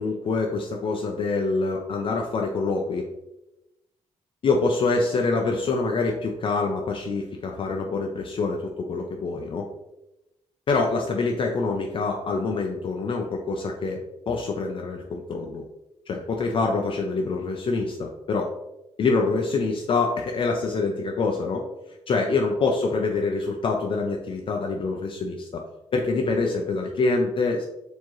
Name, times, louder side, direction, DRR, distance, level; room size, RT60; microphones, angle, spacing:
voice 1, 0.0-3.1 4.4-9.7 10.7-14.0 14.3-15.6 16.1-18.4 19.0-21.6 22.1-25.6 25.9-27.7, left 3 dB, 45° left, 1 dB, 0.4 m, -25 dB
4.4 x 2.9 x 3.0 m, 0.94 s
cardioid pair, 130°, 12 cm